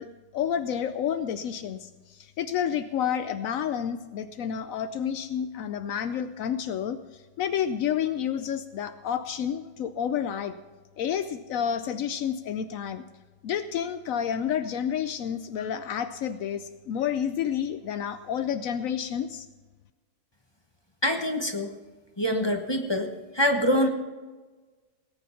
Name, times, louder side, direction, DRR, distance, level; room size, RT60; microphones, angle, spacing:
voice 1, 0.0-10.6 11.0-13.0 13.4-19.5, left 8 dB, 80° left, 10 dB, 0.7 m, -30 dB
voice 2, 21.0-21.7 22.2-23.9, equal, 20° left, 4 dB, 0.8 m, -25 dB
18.5 x 9.3 x 5.7 m, 1.3 s
omnidirectional pair, 2.1 m